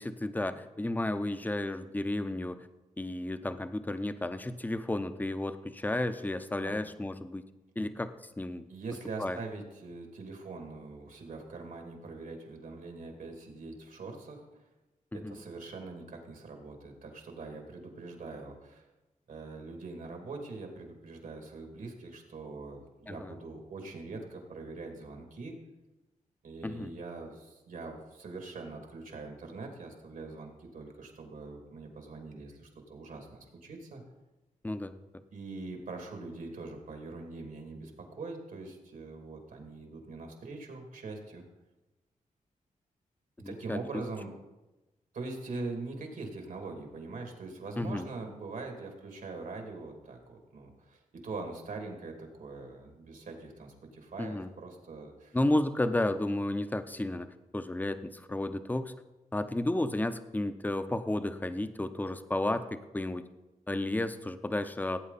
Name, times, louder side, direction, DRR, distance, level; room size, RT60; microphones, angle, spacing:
voice 1, 0.0-2.7 3.0-7.5 7.8-8.7 9.2-9.4 15.1-15.4 23.1-23.3 26.6-26.9 34.6-35.0 43.4-43.8 47.8-48.1 54.2-54.5 55.3-57.3 57.5-58.9 59.3-63.2 63.7-65.0, left 1 dB, 10° left, 10 dB, 0.7 m, -32 dB
voice 2, 8.7-14.6 15.1-18.8 19.3-25.6 26.4-34.0 35.3-41.4 43.4-44.3 45.1-55.4, right 3 dB, 75° right, 3 dB, 2.5 m, -43 dB
17.0 x 8.7 x 4.1 m, 1.1 s
cardioid pair, 80°, 14 cm